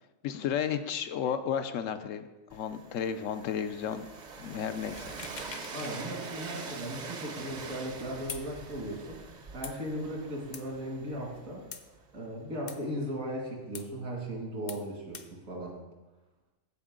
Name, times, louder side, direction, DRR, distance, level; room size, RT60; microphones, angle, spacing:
voice 1, 0.2-4.1 4.4-5.1, left 8 dB, 75° left, 9 dB, 1.0 m, -33 dB
Train, 2.5-12.3, right 4 dB, 40° right, 0.7 m, -44 dB
sound 1, 5.0-6.0 6.4-6.5 8.3-8.5 9.6-9.8 10.5-10.6 11.7-11.8 12.7-12.8 13.7-13.9 14.7-14.8 15.1-15.3, left 6 dB, 50° left, 0.6 m, -43 dB
voice 2, 5.7-9.2 9.5-11.6 12.1-15.8, equal, 80° right, -2 dB, 2.6 m, -37 dB
15.0 x 5.3 x 3.7 m, 1.1 s
omnidirectional pair, 1.4 m